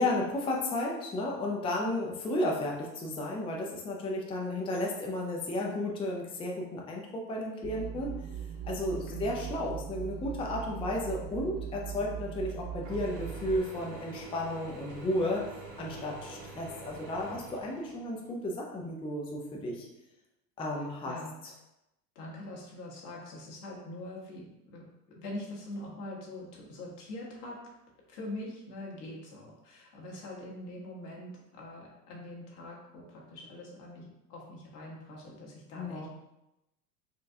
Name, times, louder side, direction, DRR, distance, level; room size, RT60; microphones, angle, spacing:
voice 1, 0.0-8.1 8.6-15.4 15.8-19.9 20.6-21.2 35.8-36.1, left 1 dB, 10° left, -1 dB, 0.4 m, -33 dB
sound 1, 7.6-13.6, right 9 dB, 45° right, 0.5 m, -40 dB
voice 2, 9.1-9.5 20.7-21.4 22.1-27.6 28.1-36.1, left 1 dB, 80° left, -3 dB, 1.2 m, -43 dB
Mechanisms / Drill, 12.8-18.3, right 3 dB, 80° right, 1.1 m, -46 dB
4.0 x 2.3 x 2.6 m, 0.91 s
hypercardioid pair, 90°, 48 cm